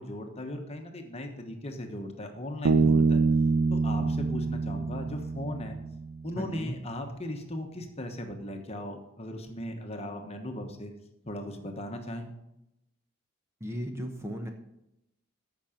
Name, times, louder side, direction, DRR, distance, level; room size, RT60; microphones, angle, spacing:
voice 1, 0.0-3.2 3.7-5.8 6.2-10.9 11.2-12.3, left 1 dB, 30° left, 4 dB, 1.2 m, -38 dB
Bass guitar, 2.7-6.2, right 4 dB, 70° right, 0.7 m, -25 dB
voice 2, 6.4-6.8 13.6-14.5, equal, 15° right, 3 dB, 1.0 m, -35 dB
14.5 x 6.1 x 5.2 m, 0.87 s
head